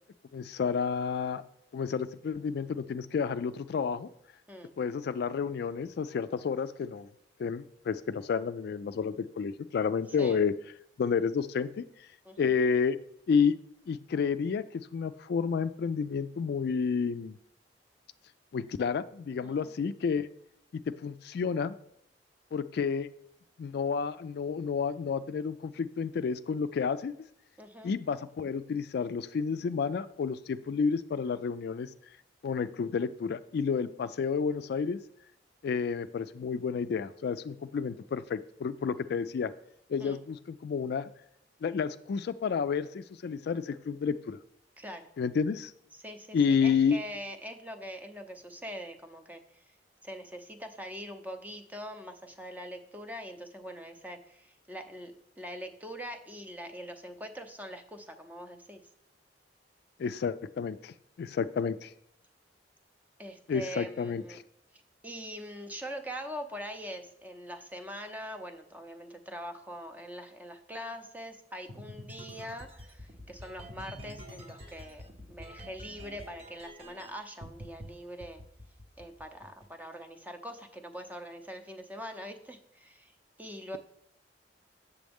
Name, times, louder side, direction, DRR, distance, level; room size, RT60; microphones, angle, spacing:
voice 1, 0.3-1.4 1.7-4.1 4.8-7.1 7.4-10.5 11.0-12.1 12.4-13.0 13.3-13.6 13.9-17.4 18.5-20.3 20.7-21.8 22.5-23.1 23.6-27.1 27.8-31.9 32.4-35.0 35.6-39.5 39.9-41.1 41.6-44.4 45.2-45.7 46.3-47.0 60.0-61.9 63.5-64.4, left 6 dB, 60° left, 12 dB, 0.3 m, -30 dB
voice 2, 19.4-19.7 27.6-27.9 40.0-40.2 44.8-45.1 45.9-49.6 50.0-58.8 63.2-64.4 65.0-75.0 75.3-78.4 79.0-83.8, equal, 10° right, 6 dB, 0.7 m, -43 dB
sound 1, 71.7-77.1 77.4-77.9 78.2-79.7, equal, 35° right, 0.9 m, -46 dB
7.5 x 6.9 x 3.5 m, 0.73 s
head